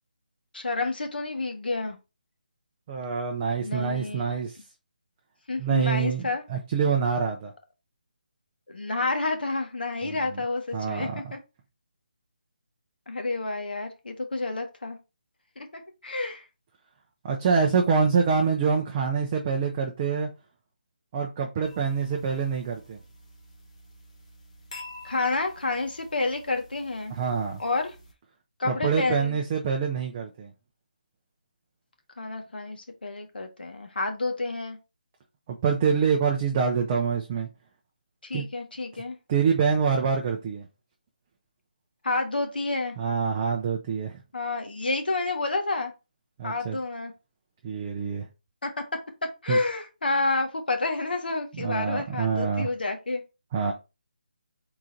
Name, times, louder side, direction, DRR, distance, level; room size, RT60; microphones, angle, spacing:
voice 1, 0.5-2.0 3.6-4.4 5.5-6.4 8.7-11.4 13.1-15.0 15.6-16.4 25.0-27.1 27.6-27.9 28.6-29.4 32.2-34.8 38.2-39.2 42.0-42.9 44.3-45.9 46.4-47.1 48.6-48.7 49.4-53.2, left 3 dB, 85° left, 1.2 m, -29 dB
voice 2, 2.9-4.6 5.6-7.5 10.0-10.2 10.7-11.2 17.2-20.3 21.1-23.0 27.1-27.6 28.6-30.5 35.5-37.5 38.3-38.5 39.3-40.6 43.0-44.2 46.4-46.8 47.6-48.2 49.5-49.6 51.5-52.7 53.5-53.7, right 6 dB, 15° right, 0.4 m, -26 dB
sound 1, 21.6-28.1, left 2 dB, 45° left, 1.3 m, -48 dB
3.8 x 2.5 x 4.3 m
hypercardioid pair, 170°, 5 cm